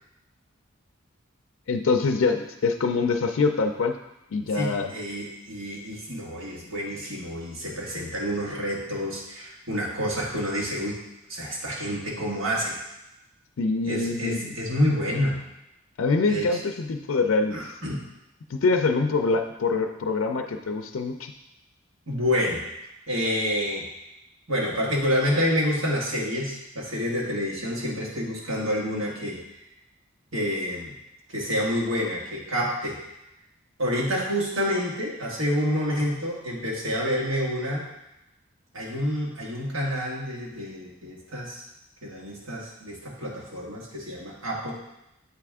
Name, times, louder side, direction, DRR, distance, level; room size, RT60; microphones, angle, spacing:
voice 1, 1.7-3.9 4.3-4.9 13.6-14.5 16.0-17.7 18.5-21.3, left 4 dB, 80° left, 4 dB, 0.4 m, -24 dB
voice 2, 4.5-11.0 11.3-12.8 13.8-15.4 16.3-16.5 17.5-18.0 22.1-22.6 23.1-23.8 24.5-29.4 30.3-30.9 31.3-33.0 33.8-37.8 38.7-41.6 42.0-44.7, equal, 75° right, -4 dB, 1.5 m, -28 dB
8.0 x 3.4 x 3.5 m, 0.88 s
head